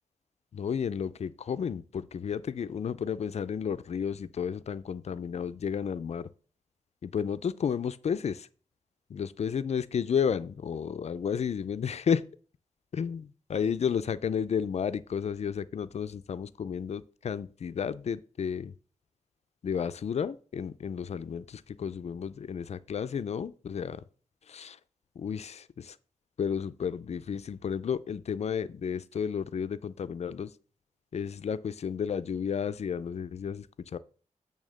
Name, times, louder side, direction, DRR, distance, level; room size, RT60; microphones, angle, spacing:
voice 1, 0.5-6.3 7.0-8.5 9.1-12.2 12.9-18.7 19.6-24.0 24.5-24.8 25.2-26.0 26.4-30.5 31.1-34.0, left 7 dB, 55° left, 0.4 m, -32 dB
8.6 x 3.5 x 6.3 m
wide cardioid pair, 180°, 14 cm